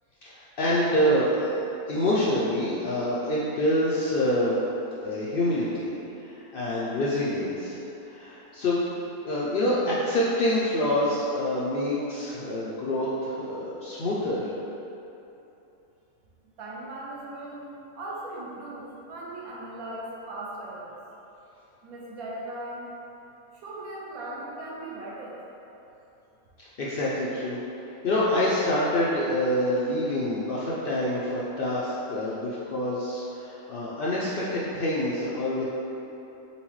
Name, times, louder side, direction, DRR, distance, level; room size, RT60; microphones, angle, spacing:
voice 1, 0.2-1.5 1.9-4.6 5.0-5.9 6.2-7.8 8.1-8.8 9.2-14.5 26.6-27.6 28.0-35.6, left 1 dB, 75° left, -7 dB, 0.5 m, -26 dB
voice 2, 16.6-21.0 21.8-22.9 23.5-25.4, right 1 dB, 75° right, -4 dB, 1.1 m, -38 dB
4.2 x 3.8 x 3.1 m, 2.9 s
omnidirectional pair, 1.6 m